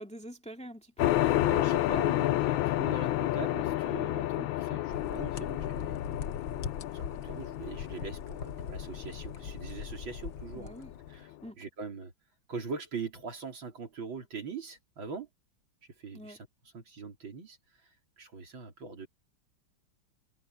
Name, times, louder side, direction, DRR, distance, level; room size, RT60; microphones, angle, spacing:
voice 1, 0.0-1.4 10.5-10.9 11.4-11.6 16.1-16.4, equal, 5° left, 2.2 m, -46 dB
sound 1, 1.0-11.1, left 15 dB, 90° left, 1.4 m, -31 dB
voice 2, 1.3-6.0 6.9-10.7 11.1-11.3 11.6-12.1 12.5-15.3 16.0-16.4 16.7-17.6 18.2-19.1, right 4 dB, 75° right, 4.5 m, -42 dB
sound 2, 4.9-11.2, left 6 dB, 60° left, 1.6 m, -41 dB
omnidirectional pair, 2.1 m